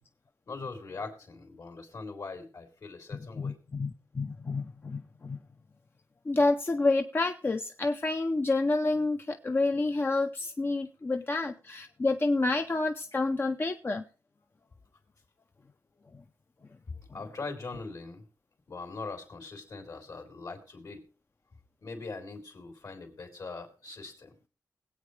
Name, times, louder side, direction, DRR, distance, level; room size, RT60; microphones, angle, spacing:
voice 1, 0.5-3.6 17.1-18.2 18.7-21.0 21.8-24.4, left 3 dB, 65° left, 3.6 m, -41 dB
voice 2, 3.3-5.4 6.3-14.0, left 3 dB, 30° left, 0.7 m, -29 dB
21.0 x 8.4 x 3.2 m
wide cardioid pair, 100°, 7 cm